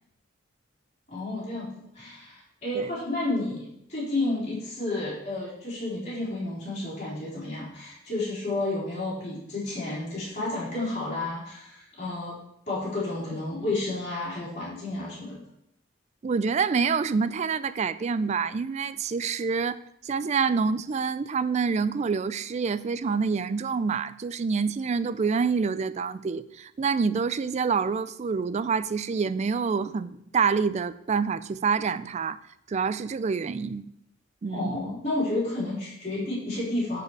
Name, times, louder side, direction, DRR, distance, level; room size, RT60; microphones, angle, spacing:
voice 1, 1.1-12.4 12.7-15.4 34.5-37.0, left 2 dB, 35° left, -8 dB, 3.8 m, -31 dB
voice 2, 16.2-19.8 20.0-32.4 32.7-33.9 34.4-34.8, right 5 dB, 35° right, 15 dB, 0.3 m, -27 dB
10.0 x 4.9 x 4.7 m, 0.77 s
head